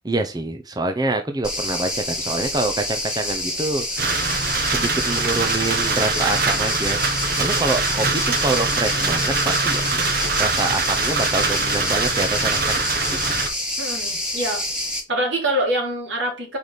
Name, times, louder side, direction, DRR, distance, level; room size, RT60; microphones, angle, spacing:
voice 1, 0.0-4.2 4.6-9.8 10.4-12.7 13.1-13.2, right 2 dB, 20° right, 5 dB, 0.6 m, -26 dB
sound 1, 1.4-15.0, left 1 dB, 5° right, 1.7 m, -27 dB
sound 2, 4.0-13.5, right 4 dB, 50° right, 1.2 m, -23 dB
voice 2, 13.8-14.6 15.1-16.6, right 1 dB, 75° right, 0 dB, 3.3 m, -24 dB
5.2 x 4.8 x 4.0 m, 0.29 s
head